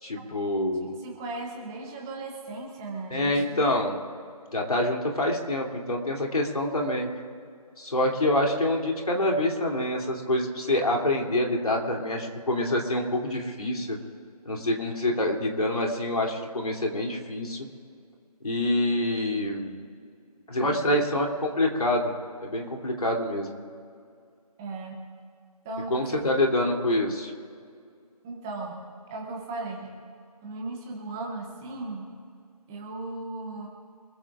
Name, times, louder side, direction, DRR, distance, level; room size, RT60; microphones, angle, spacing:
voice 1, 0.0-0.9 3.1-4.0 4.5-7.1 7.8-14.0 14.4-17.7 18.4-19.8 20.5-22.1 22.4-23.6 25.9-27.3, left 1 dB, 65° left, 1 dB, 3.0 m, -26 dB
voice 2, 1.0-3.6 9.1-9.4 20.6-21.0 24.6-25.1 25.6-26.2 28.2-28.8 29.1-29.9 30.4-32.1 32.7-33.7, right 3 dB, 5° right, -1 dB, 0.6 m, -37 dB
25.0 x 15.0 x 2.5 m, 2.3 s
figure-of-eight pair, 165°, 20 cm